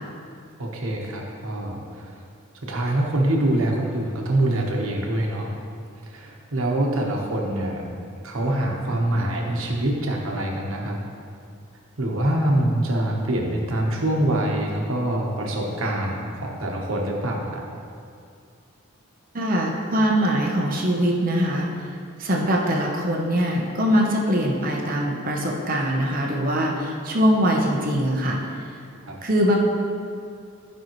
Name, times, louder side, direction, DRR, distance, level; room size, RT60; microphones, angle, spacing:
voice 1, 0.6-2.2 2.7-5.5 6.0-7.8 8.2-11.0 12.0-17.6 29.0-29.1, right 1 dB, 75° right, -1 dB, 1.2 m, -25 dB
voice 2, 19.3-21.7 22.2-28.4 29.2-29.6, equal, 40° right, -1 dB, 0.9 m, -22 dB
11.5 x 5.5 x 3.1 m, 2.4 s
head